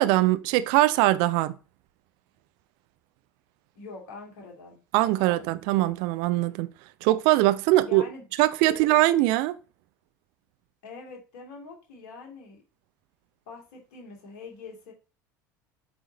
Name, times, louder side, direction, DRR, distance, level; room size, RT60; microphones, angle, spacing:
voice 1, 0.0-1.5 4.9-6.7 7.0-8.0 8.4-9.6, right 16 dB, 50° right, 0.5 m, -22 dB
voice 2, 3.7-4.8 5.1-5.6 7.8-8.2 8.7-8.8 10.8-12.6 13.5-14.9, left 4 dB, 55° left, 2.5 m, -44 dB
7.9 x 3.7 x 4.0 m
figure-of-eight pair, 70°, 10 cm